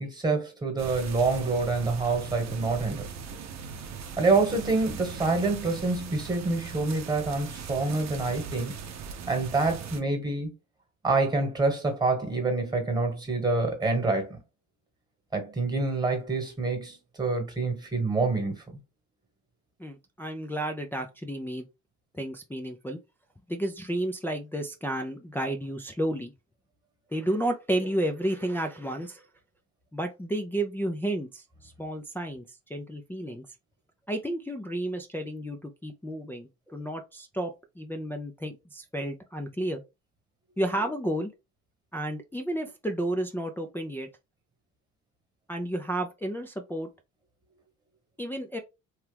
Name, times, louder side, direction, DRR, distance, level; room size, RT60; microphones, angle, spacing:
voice 1, 0.0-3.1 4.2-8.7 9.3-10.5 11.0-14.4 15.3-18.5, right 3 dB, 15° right, 1.3 m, -27 dB
sound 1, 0.8-10.0, right 6 dB, 60° right, 0.7 m, -40 dB
voice 2, 19.8-21.6 22.1-23.0 23.5-26.3 27.1-29.2 29.9-33.5 34.1-37.5 37.8-39.8 40.6-41.3 41.9-44.1 45.5-46.9 48.2-48.6, right 1 dB, 5° left, 0.4 m, -32 dB
3.0 x 2.3 x 3.3 m
cardioid pair, 90°, 30 cm